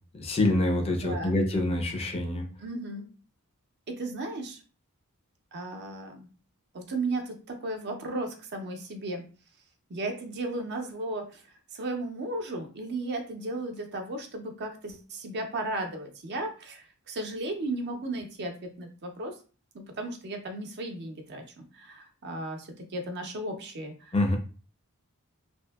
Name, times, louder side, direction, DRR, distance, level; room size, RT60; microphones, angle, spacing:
voice 1, 0.1-2.5 24.1-24.4, left 1 dB, 25° left, 3 dB, 0.4 m, -26 dB
voice 2, 1.0-1.4 2.6-3.1 3.9-4.6 5.5-6.3 6.7-9.2 9.9-11.4 11.7-19.3 19.7-24.1, right 2 dB, 50° right, 4 dB, 0.5 m, -35 dB
2.7 x 2.5 x 2.3 m, 0.37 s
head